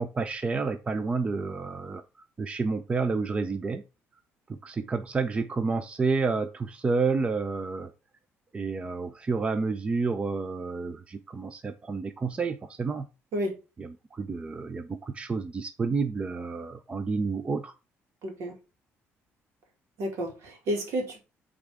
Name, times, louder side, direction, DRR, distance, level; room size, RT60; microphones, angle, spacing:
voice 1, 0.0-2.0 2.4-3.8 4.5-7.9 8.5-13.1 13.8-17.7, right 4 dB, 25° right, 0.5 m, -30 dB
voice 2, 18.2-18.5 20.0-21.2, right 1 dB, 75° right, 2.3 m, -31 dB
8.2 x 3.6 x 3.5 m
cardioid pair, 130°, 5 cm